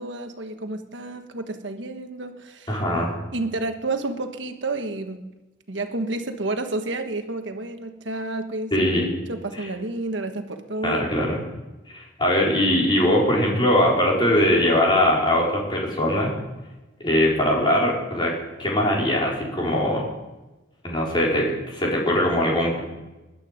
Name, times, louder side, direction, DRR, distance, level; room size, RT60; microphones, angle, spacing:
voice 1, 0.0-2.8 3.3-5.2 5.7-8.9 9.3-11.1, right 2 dB, 70° right, 6 dB, 1.4 m, -30 dB
voice 2, 2.7-3.1 8.7-9.1 10.8-11.4 11.9-16.3 17.0-18.3 18.6-20.1 20.8-22.8, left 1 dB, 25° left, -4 dB, 4.2 m, -21 dB
20.0 x 11.5 x 5.1 m, 1.1 s
head